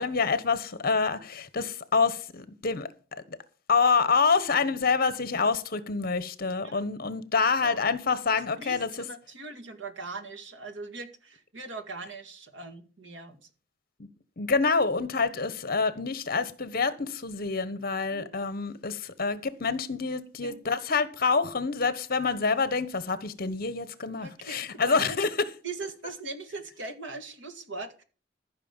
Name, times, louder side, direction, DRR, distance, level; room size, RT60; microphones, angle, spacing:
voice 1, 0.0-2.9 3.7-8.9 14.0-14.1 14.4-25.3, left 4 dB, 50° left, 1.1 m, -27 dB
voice 2, 7.4-7.8 8.3-13.5 18.1-18.3 20.4-20.6 24.2-25.2 25.6-28.0, right 3 dB, 80° right, 2.1 m, -40 dB
14.5 x 5.9 x 7.2 m
head